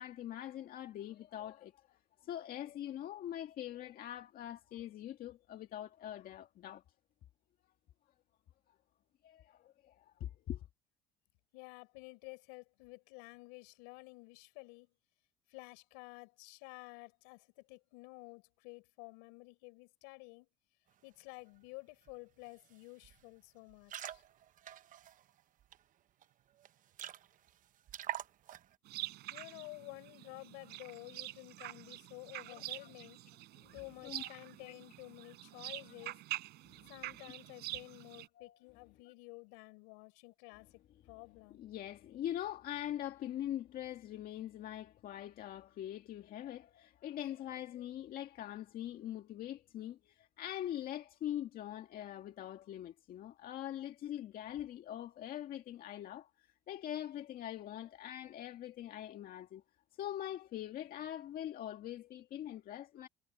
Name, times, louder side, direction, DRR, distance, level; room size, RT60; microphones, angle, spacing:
voice 1, 0.0-6.8 9.2-10.6 32.5-32.9 33.6-33.7 34.0-34.4 34.7-34.8 35.5-35.6 36.7-36.8 37.3-37.4 38.4-38.6 41.6-59.6 60.0-63.1, left 12 dB, 55° left, 1.9 m, -43 dB
voice 2, 11.5-14.9 15.5-20.5 21.0-24.2 29.3-33.2 33.7-36.2 36.9-40.8 41.1-41.6, left 30 dB, 85° left, 6.2 m, -52 dB
sound 1, 22.1-22.2 22.5-22.7 23.0-23.2 23.7-25.8 26.2-26.3 26.6-26.7 26.9-27.5 27.9-28.7, right 12 dB, 50° right, 0.9 m, -45 dB
sound 2, 28.9-38.3, right 17 dB, 70° right, 5.1 m, -46 dB
supercardioid pair, 100°, 17 cm